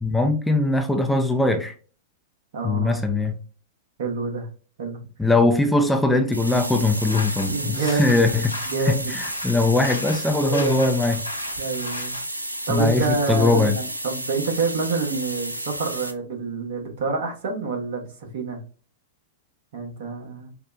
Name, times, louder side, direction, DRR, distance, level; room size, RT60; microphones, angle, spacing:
voice 1, 0.0-1.7 2.6-3.4 5.2-11.2 12.7-13.8, left 2 dB, 5° left, 0.4 m, -21 dB
voice 2, 2.5-3.0 4.0-4.5 4.8-5.0 7.5-8.2 8.7-9.1 10.4-10.9 11.6-12.2 12.7-18.6 19.7-20.5, right 4 dB, 55° right, 1.1 m, -27 dB
sound 1, 6.3-16.1, right 1 dB, 85° right, 0.4 m, -32 dB
sound 2, 6.8-12.2, left 2 dB, 85° left, 0.6 m, -37 dB
4.8 x 2.1 x 2.5 m
figure-of-eight pair, 100°, 0 cm